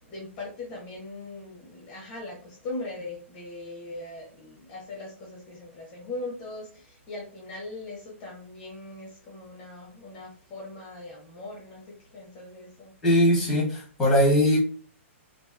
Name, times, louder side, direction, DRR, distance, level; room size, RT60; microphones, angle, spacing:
voice 1, 0.0-12.9, left 2 dB, 25° left, -2 dB, 0.7 m, -40 dB
voice 2, 13.0-14.6, equal, 5° left, -4 dB, 1.0 m, -20 dB
2.4 x 2.2 x 2.4 m, 0.42 s
hypercardioid pair, 160°, 7 cm